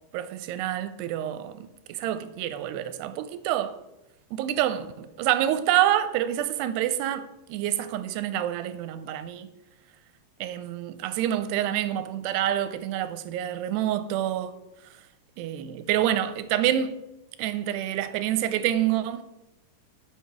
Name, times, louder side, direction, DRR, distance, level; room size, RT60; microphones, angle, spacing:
voice 1, 0.1-3.8 4.3-9.5 10.4-14.5 15.4-17.0 17.4-19.2, right 11 dB, 80° right, 2.5 m, -27 dB
12.0 x 5.7 x 6.1 m
omnidirectional pair, 5.0 m